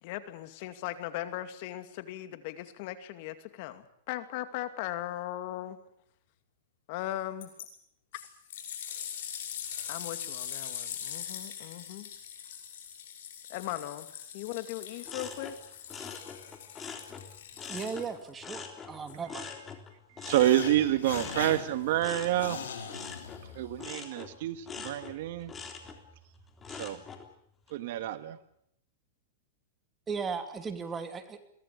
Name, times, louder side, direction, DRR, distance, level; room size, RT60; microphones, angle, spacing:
voice 1, 0.0-5.8 6.9-7.5 9.9-12.1 13.5-14.1 14.3-15.6, left 13 dB, 50° left, 10 dB, 2.4 m, -38 dB
sound 1, 7.4-7.7 8.1-18.3 19.1-19.2, left 9 dB, 70° left, 6.1 m, -42 dB
sound 2, 15.1-18.1 18.4-27.3 27.7-28.1, left 5 dB, 20° left, 3.5 m, -44 dB
voice 2, 17.7-19.5 30.1-31.4, right 5 dB, 15° right, 8 dB, 2.7 m, -36 dB
sound 3, 20.2-23.9, left 7 dB, 85° left, 4.6 m, -41 dB
voice 3, 20.2-22.6 23.5-25.5 26.8-27.0 27.7-28.4, right 13 dB, 60° right, 12 dB, 1.7 m, -28 dB
23.0 x 17.5 x 8.7 m, 0.71 s
hypercardioid pair, 135°, 0 cm